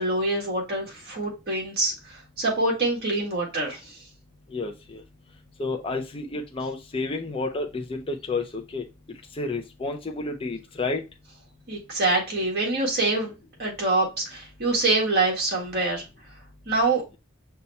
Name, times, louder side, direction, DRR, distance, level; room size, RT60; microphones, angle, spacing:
voice 1, 0.0-4.0 11.7-13.3 13.6-16.1 16.6-17.0, right 2 dB, 50° right, -1 dB, 1.7 m, -25 dB
voice 2, 4.5-5.0 5.6-8.8 9.3-11.0, left 3 dB, 25° left, 3 dB, 0.5 m, -30 dB
5.6 x 2.2 x 4.0 m, 0.27 s
head